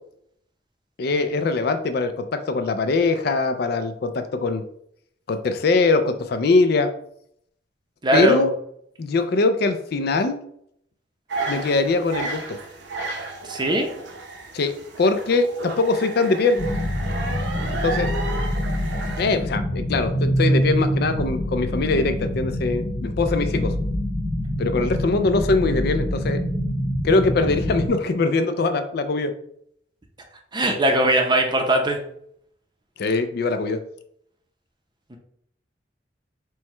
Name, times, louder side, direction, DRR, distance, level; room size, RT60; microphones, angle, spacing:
voice 1, 1.0-4.6 5.3-6.9 8.1-8.5 9.0-10.4 11.5-12.6 14.5-14.7 15.0-16.6 17.8-18.1 19.2-23.7 24.6-26.4 27.0-29.3 33.0-33.8, left 3 dB, 55° left, 9 dB, 0.4 m, -22 dB
voice 2, 8.0-8.4 13.5-13.9 30.5-32.0 35.1-35.2, right 1 dB, 25° right, 3 dB, 0.6 m, -20 dB
sound 1, 11.3-19.2, right 3 dB, 70° right, 0.8 m, -32 dB
sound 2, 16.6-27.9, equal, 40° left, 0.8 m, -25 dB
4.6 x 2.2 x 4.2 m, 0.69 s
head